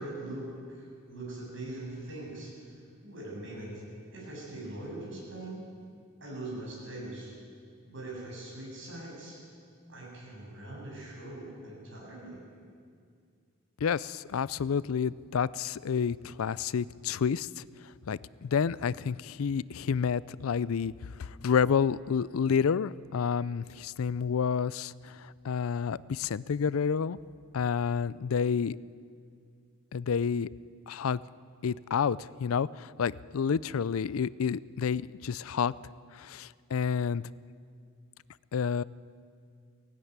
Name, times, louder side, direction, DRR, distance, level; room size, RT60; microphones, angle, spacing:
voice 1, 0.0-2.5 3.0-3.8 4.1-5.6 6.2-7.3 7.8-9.4 9.9-12.4, right 1 dB, 65° right, -4 dB, 7.9 m, -41 dB
voice 2, 13.8-17.6 18.1-20.9 21.2-27.2 27.5-28.8 29.9-30.5 30.9-31.2 31.6-35.7 36.1-37.2 38.5-38.8, left 6 dB, 90° left, 20 dB, 0.4 m, -29 dB
17.5 x 16.5 x 9.6 m, 2.2 s
head